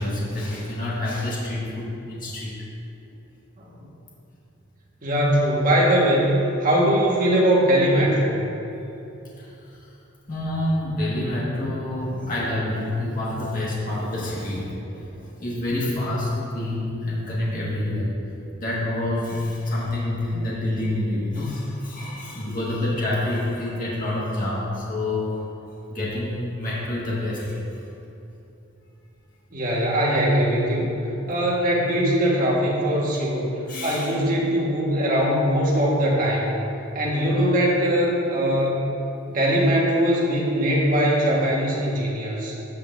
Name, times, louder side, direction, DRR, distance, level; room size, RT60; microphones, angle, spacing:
voice 1, 0.0-2.5 9.4-9.5 10.3-18.1 18.6-25.3 25.9-27.8 33.7-34.2, left 1 dB, 40° left, -6 dB, 1.8 m, -27 dB
voice 2, 3.6-3.9 5.0-8.3 29.5-30.9 31.3-33.5 33.8-36.5 36.9-38.9 39.3-42.6, equal, 40° right, -4 dB, 1.6 m, -21 dB
13.5 x 6.7 x 2.7 m, 2.9 s
head